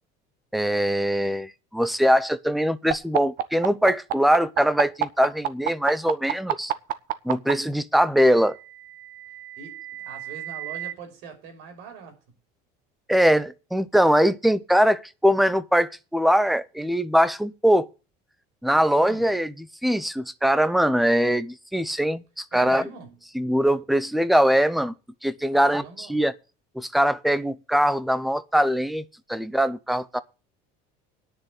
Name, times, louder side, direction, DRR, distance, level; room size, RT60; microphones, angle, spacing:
voice 1, 0.5-6.7 7.2-8.6 13.1-17.9 18.6-19.5 19.8-22.8 23.3-24.9 25.2-26.3 26.8-30.2, equal, ahead, 0.5 m, -22 dB
sound 1, 2.9-7.5 8.7-10.9, right 12 dB, 45° right, 1.1 m, -28 dB
voice 2, 9.6-12.2 18.9-19.3 22.5-23.2 25.5-26.2, right 5 dB, 60° right, 6.0 m, -42 dB
10.5 x 6.6 x 8.5 m
cardioid pair, 175°, 20 cm